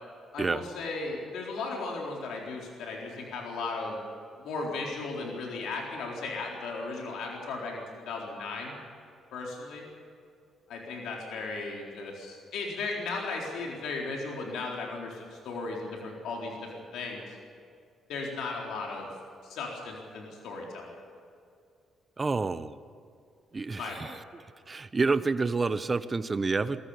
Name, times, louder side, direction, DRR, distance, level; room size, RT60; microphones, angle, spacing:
voice 1, 0.3-4.0 4.4-8.7 9.3-9.9 10.7-17.4 18.1-19.1 19.4-21.0 23.8-24.2, left 3 dB, 80° left, -1 dB, 4.1 m, -36 dB
voice 2, 22.2-22.7 23.5-24.2 24.7-26.8, right 4 dB, 30° right, 13 dB, 1.0 m, -28 dB
22.5 x 14.0 x 9.8 m, 2.3 s
cardioid pair, 90°, 0 cm